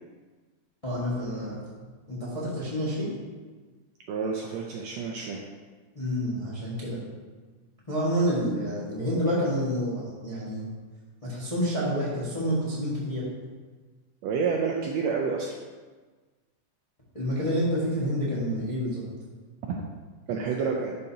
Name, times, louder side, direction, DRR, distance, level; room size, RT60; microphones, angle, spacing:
voice 1, 0.8-1.6 2.1-3.1 5.9-7.0 7.9-10.7 11.2-13.2 17.1-19.0, equal, 20° left, -8 dB, 1.0 m, -28 dB
voice 2, 4.1-5.4 14.2-15.5 19.6-19.8 20.3-21.0, right 5 dB, 80° right, 0 dB, 1.6 m, -29 dB
11.0 x 5.3 x 2.9 m, 1.4 s
omnidirectional pair, 3.5 m